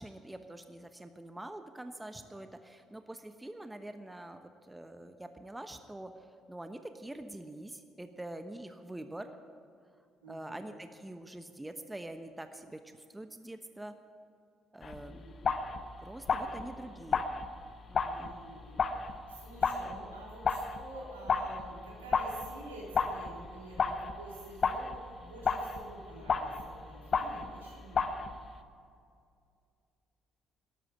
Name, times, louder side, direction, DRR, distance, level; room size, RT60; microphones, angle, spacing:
voice 1, 0.0-9.3 10.3-13.9 14.7-15.2 16.0-17.2 17.9-18.3, right 1 dB, 10° right, 8 dB, 1.1 m, -45 dB
voice 2, 10.2-10.6 15.0-15.4 16.3-16.6 18.1-28.1, right 1 dB, 90° right, -4 dB, 3.6 m, -49 dB
sound 1, 14.8-28.6, left 5 dB, 45° left, 1.0 m, -34 dB
13.0 x 11.5 x 9.1 m, 2.3 s
hypercardioid pair, 50°, 0 cm